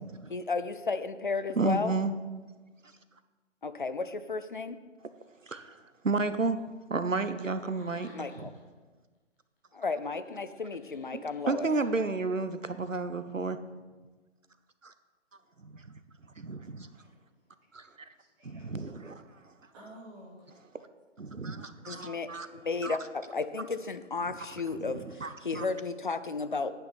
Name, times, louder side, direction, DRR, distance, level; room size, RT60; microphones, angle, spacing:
voice 1, 0.3-1.9 3.6-4.8 8.1-8.5 9.7-11.7 21.9-26.7, left 4 dB, 40° left, 11 dB, 0.6 m, -33 dB
voice 2, 1.6-2.1 5.5-6.6 6.9-8.5 11.1-13.6 14.8-14.9 15.6-15.8 16.4-16.9 17.7-17.9 18.4-19.4 21.2-22.5 22.8-23.0 24.3-24.4 24.8-25.6, right 3 dB, 85° right, 11 dB, 1.0 m, -32 dB
Laughter, 7.5-8.8 9.1-12.3, left 2 dB, 15° left, 1.4 m, -60 dB
voice 3, 16.7-20.6, right 1 dB, 15° right, -6 dB, 2.5 m, -55 dB
11.5 x 9.4 x 4.2 m, 1.3 s
figure-of-eight pair, 145°, 38 cm